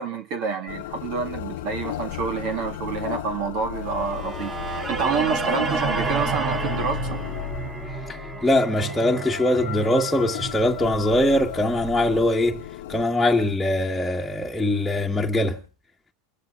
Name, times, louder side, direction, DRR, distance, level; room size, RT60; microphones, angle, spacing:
voice 1, 0.0-7.2, right 5 dB, 55° right, 2.1 m, -28 dB
sound 1, 0.7-13.0, left 13 dB, 75° left, 0.9 m, -35 dB
sound 2, 4.0-12.1, right 5 dB, 30° right, 4.2 m, -31 dB
voice 2, 8.1-12.6 12.9-15.6, left 1 dB, 5° left, 1.6 m, -22 dB
29.5 x 14.5 x 2.6 m
hypercardioid pair, 100°, 0 cm